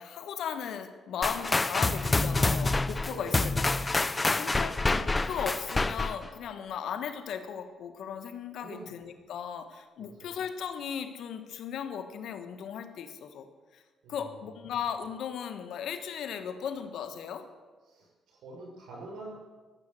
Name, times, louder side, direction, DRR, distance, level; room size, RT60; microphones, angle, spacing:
voice 1, 0.0-13.5 13.7-13.8 14.1-17.5, left 8 dB, 75° left, 8 dB, 1.4 m, -37 dB
sound 1, 1.2-6.3, left 2 dB, 20° left, 0.6 m, -27 dB
voice 2, 3.1-3.7 4.2-4.5 8.6-8.9 10.0-10.3 14.0-14.4 17.9-19.3, right 2 dB, 80° right, -1 dB, 6.2 m, -46 dB
14.5 x 7.3 x 9.4 m, 1.3 s
cardioid pair, 90°, 0 cm